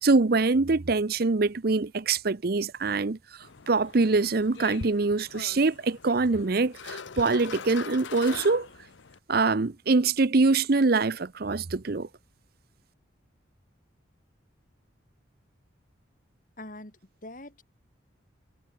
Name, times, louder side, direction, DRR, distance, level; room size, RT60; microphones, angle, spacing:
voice 1, 0.0-3.2 3.7-8.7 9.3-12.1, right 3 dB, 50° right, 0.7 m, -24 dB
sound 1, 3.4-9.2, left 5 dB, 70° left, 0.8 m, -42 dB
voice 2, 16.6-17.6, left 2 dB, 45° left, 3.7 m, -44 dB
head